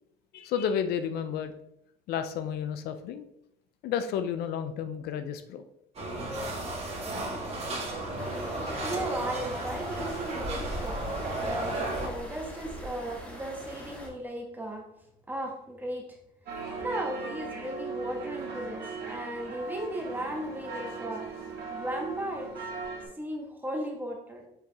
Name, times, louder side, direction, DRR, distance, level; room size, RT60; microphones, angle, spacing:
voice 1, 0.3-1.5 2.1-3.2 3.8-5.6 6.0-6.2, left 8 dB, 75° left, 10 dB, 0.5 m, -31 dB
sound 1, 6.0-12.1, right 2 dB, 40° right, 1.9 m, -34 dB
sound 2, 8.2-14.1, equal, 10° left, 2.5 m, -41 dB
voice 2, 8.8-14.8 15.3-16.1 16.8-21.3 21.7-22.6 23.2-24.4, right 1 dB, 10° right, 0 dB, 1.7 m, -36 dB
sound 3, 16.5-23.0, right 4 dB, 70° right, 2.0 m, -38 dB
6.5 x 4.8 x 3.5 m, 0.78 s
cardioid pair, 95°, 16 cm